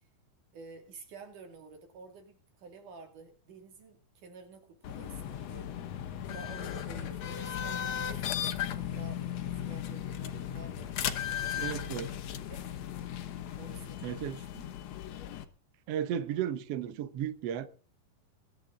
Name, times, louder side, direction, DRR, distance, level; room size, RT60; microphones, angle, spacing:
voice 1, 0.5-5.7 6.3-9.2 9.7-12.1 12.4-12.6 13.6-14.5, right 4 dB, 60° right, 3.9 m, -51 dB
sound 1, 4.8-15.4, left 10 dB, 65° left, 1.8 m, -36 dB
voice 2, 11.6-12.1 14.0-14.7 15.9-17.7, right 10 dB, 85° right, 1.4 m, -34 dB
22.0 x 10.0 x 3.9 m
omnidirectional pair, 4.2 m